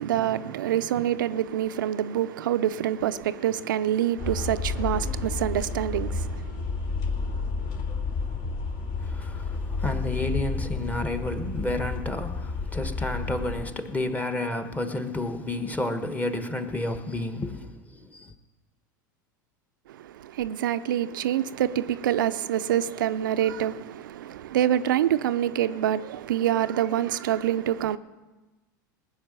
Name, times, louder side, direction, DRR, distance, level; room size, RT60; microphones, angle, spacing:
voice 1, 0.0-6.6 19.9-28.0, right 11 dB, 75° right, 0.6 m, -26 dB
sound 1, 4.2-13.6, left 4 dB, 50° left, 2.5 m, -31 dB
voice 2, 9.0-18.3, left 2 dB, 15° left, 1.3 m, -31 dB
19.0 x 6.4 x 9.0 m
hypercardioid pair, 90°, 11 cm